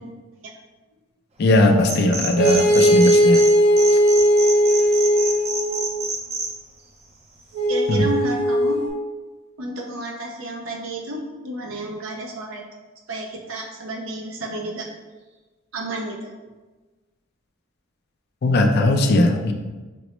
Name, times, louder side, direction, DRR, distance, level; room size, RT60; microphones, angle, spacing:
voice 1, 1.4-3.4 7.9-8.1 18.4-19.5, left 1 dB, 50° left, 3 dB, 0.4 m, -18 dB
sound 1, 1.8-3.5 3.8-6.5, right 3 dB, 30° right, 0.5 m, -27 dB
sound 2, 2.4-5.9 7.5-8.9, equal, 60° right, 1.5 m, -18 dB
voice 2, 7.7-8.8 9.6-12.7 13.1-14.9 15.7-16.3, equal, 75° right, 0 dB, 0.6 m, -31 dB
6.0 x 2.0 x 3.0 m, 1.2 s
head